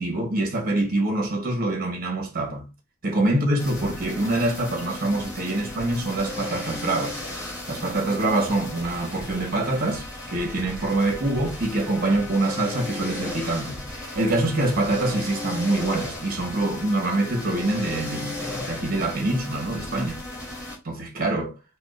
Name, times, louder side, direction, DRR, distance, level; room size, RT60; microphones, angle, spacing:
voice 1, 0.0-2.6 3.0-7.2 7.7-20.2 20.8-21.5, right 2 dB, 40° right, 1.0 m, -25 dB
sound 1, 3.6-20.8, left 2 dB, 15° left, 1.0 m, -35 dB
4.4 x 2.3 x 2.5 m
head